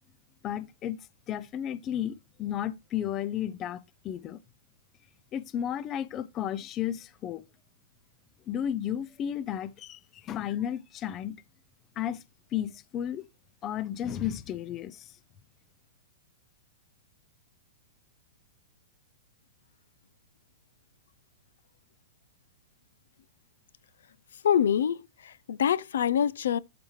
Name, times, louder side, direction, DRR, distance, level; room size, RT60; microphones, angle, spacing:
voice 1, 0.4-1.0 1.3-3.8 4.0-4.4 5.3-7.4 8.5-11.4 12.0-12.2 12.5-13.2 13.6-15.1, left 10 dB, 20° left, 0.4 m, -33 dB
voice 2, 24.4-26.6, left 9 dB, 75° left, 0.5 m, -25 dB
12.5 x 4.3 x 3.1 m
supercardioid pair, 180°, 0 cm